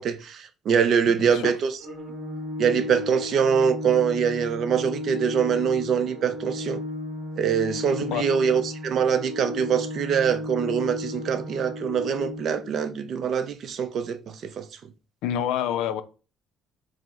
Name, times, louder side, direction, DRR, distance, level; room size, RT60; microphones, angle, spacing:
voice 1, 0.0-1.7 2.6-6.8 7.4-14.6, right 7 dB, 50° right, 0.5 m, -24 dB
Organ, 1.8-12.8, left 2 dB, 20° right, 1.9 m, -34 dB
voice 2, 15.2-16.0, left 10 dB, 90° left, 0.4 m, -27 dB
4.8 x 2.1 x 3.6 m
cardioid pair, 145°, 0 cm